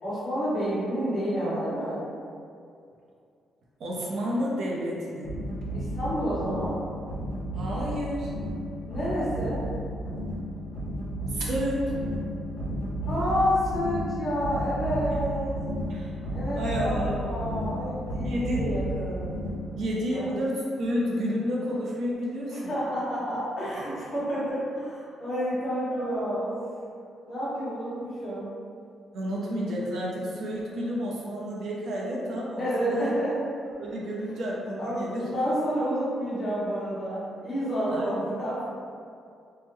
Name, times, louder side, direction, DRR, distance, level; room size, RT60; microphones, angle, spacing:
voice 1, 0.0-2.0 5.7-6.8 8.9-9.6 13.0-15.5 16.3-19.3 20.1-20.4 22.5-26.6 27.2-28.4 32.6-33.3 34.8-38.6, equal, 35° left, -11 dB, 1.3 m, -29 dB
voice 2, 3.8-5.3 7.6-8.3 11.3-11.9 15.9-16.1 16.6-17.2 18.2-18.7 19.7-22.7 29.1-33.1 33.8-35.3 37.9-38.1, equal, 55° right, -4 dB, 0.5 m, -30 dB
sound 1, 5.2-19.9, equal, 80° left, 1.0 m, -33 dB
3.3 x 2.1 x 3.3 m, 2.4 s
cardioid pair, 170°, 0 cm